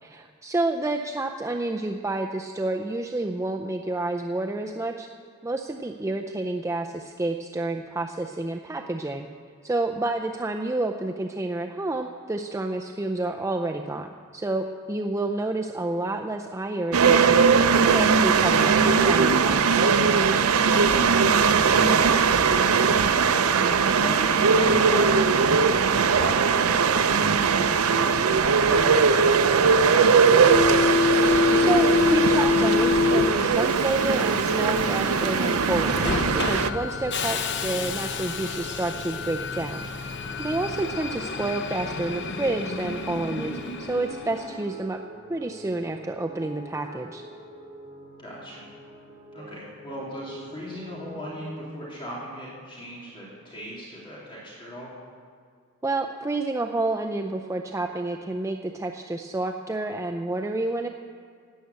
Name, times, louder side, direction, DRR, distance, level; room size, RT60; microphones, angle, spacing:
voice 1, 0.0-5.1 5.4-9.3 9.6-19.9 31.4-45.0 45.3-47.2 55.8-60.9, right 2 dB, 15° right, 3 dB, 0.5 m, -29 dB
sound 1, 16.9-36.7, right 5 dB, 75° right, 0.6 m, -20 dB
voice 2, 21.5-22.3 23.2-23.6 23.9-31.1 48.2-48.7 49.3-54.9, equal, 25° left, -7 dB, 3.2 m, -37 dB
Subway metro underground, 30.4-44.7, left 4 dB, 55° left, 0.8 m, -27 dB
sound 2, 34.4-51.5, equal, 40° right, 4.2 m, -46 dB
13.0 x 9.9 x 8.2 m, 2.1 s
head